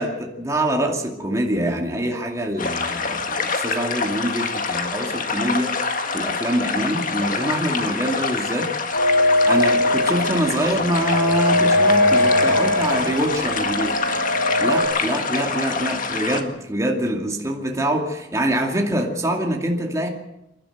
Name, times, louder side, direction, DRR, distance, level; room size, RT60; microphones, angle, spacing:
voice 1, 0.0-5.8 6.1-8.7 9.4-13.9 14.6-20.1, right 1 dB, 15° right, 1 dB, 2.5 m, -24 dB
sound 1, 2.6-16.4, left 4 dB, 45° left, 1.8 m, -26 dB
sound 2, 8.9-14.8, left 1 dB, 75° left, 6.9 m, -20 dB
27.5 x 11.5 x 8.0 m, 0.89 s
head